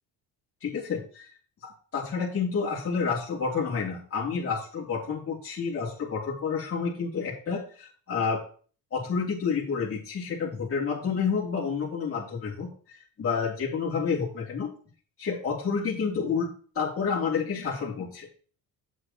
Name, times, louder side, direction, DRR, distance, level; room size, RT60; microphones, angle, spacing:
voice 1, 0.6-1.3 1.6-8.4 8.9-14.7 15.2-18.3, left 5 dB, 40° left, -5 dB, 2.7 m, -29 dB
8.1 x 7.3 x 3.0 m, 0.42 s
cardioid pair, 105°, 36 cm